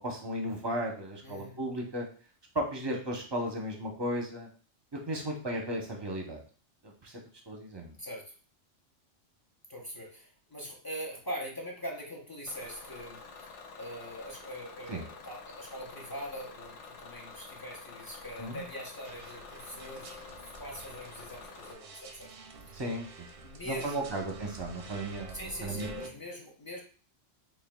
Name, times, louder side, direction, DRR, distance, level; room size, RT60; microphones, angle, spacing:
voice 1, 0.0-2.1 2.5-4.5 5.1-6.4 6.8-7.2 7.5-8.0 14.9-15.0 18.4-18.6 22.7-23.3 23.6-25.9, right 1 dB, 25° right, 1 dB, 0.7 m, -35 dB
voice 2, 1.2-1.6 8.0-8.3 9.7-20.2 20.6-22.3 22.7-22.8 23.4-24.2 25.3-26.8, equal, 20° left, -2 dB, 0.7 m, -42 dB
Bus / Engine, 12.5-21.7, left 4 dB, 75° left, 1.0 m, -49 dB
sound 1, 19.0-26.1, right 2 dB, 60° right, 0.7 m, -48 dB
4.6 x 3.2 x 2.3 m, 0.40 s
omnidirectional pair, 1.2 m